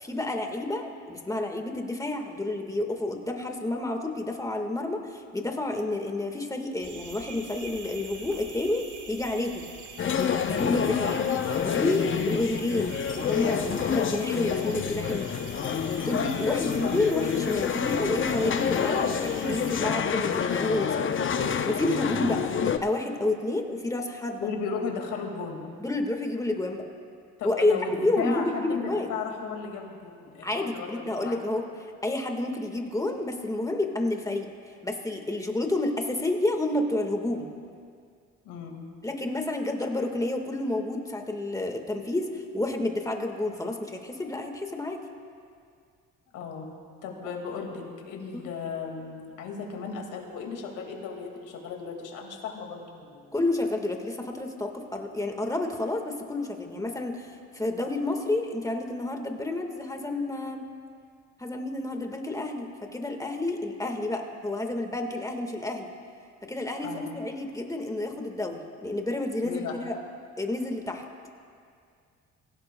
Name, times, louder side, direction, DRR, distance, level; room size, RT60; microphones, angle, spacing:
voice 1, 0.0-9.7 10.4-11.2 11.6-15.3 16.0-20.9 21.4-24.5 25.8-26.8 27.4-29.1 30.4-31.6 32.0-34.5 34.8-37.5 39.0-45.0 48.3-48.4 53.3-60.6 61.4-65.9 66.5-70.0 70.4-71.0, left 2 dB, 10° left, 3 dB, 1.6 m, -30 dB
sound 1, 6.8-19.8, right 5 dB, 75° right, 1.6 m, -45 dB
sound 2, 10.0-22.8, left 7 dB, 40° left, 0.7 m, -28 dB
voice 2, 24.4-25.7 27.4-31.4 38.4-38.8 46.3-46.7 47.0-53.3 66.8-67.1 69.4-69.7, left 5 dB, 90° left, 2 dB, 2.1 m, -36 dB
23.5 x 16.0 x 2.2 m, 2.2 s
cardioid pair, 90°, 30 cm